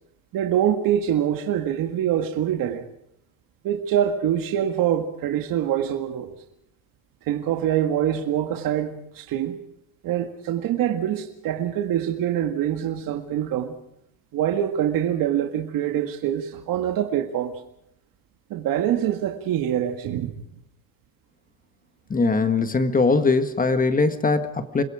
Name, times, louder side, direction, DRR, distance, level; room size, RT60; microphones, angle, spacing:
voice 1, 0.3-2.8 3.6-6.3 7.3-9.6 10.0-13.8 14.3-17.5 18.5-20.3, right 10 dB, 65° right, 2.0 m, -24 dB
voice 2, 22.1-24.8, left 3 dB, 25° left, 1.6 m, -21 dB
28.5 x 21.5 x 5.0 m
cardioid pair, 120°, 36 cm